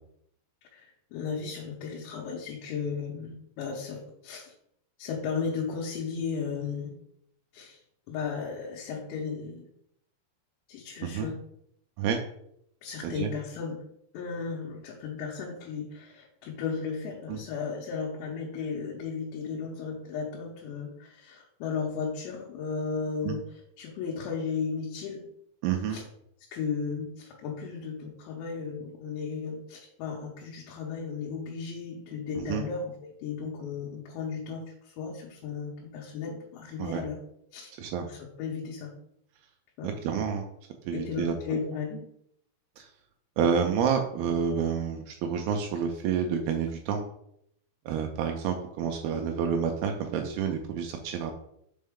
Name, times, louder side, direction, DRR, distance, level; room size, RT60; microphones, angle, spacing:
voice 1, 0.7-4.5 5.0-6.9 7.5-7.8 8.1-9.6 10.7-11.3 12.8-13.8 14.1-23.4 23.8-25.3 25.9-26.0 26.5-37.2 37.5-37.7 38.1-38.9 39.8-39.9 40.9-42.0, left 5 dB, 90° left, -2 dB, 3.2 m, -35 dB
voice 2, 25.6-26.0 32.4-32.6 36.8-37.0 37.8-38.0 39.8-40.5 40.9-41.6 42.8-42.9 43.4-47.0 47.9-51.3, right 7 dB, 85° right, 4 dB, 2.2 m, -29 dB
5.5 x 5.2 x 3.6 m, 0.73 s
omnidirectional pair, 5.0 m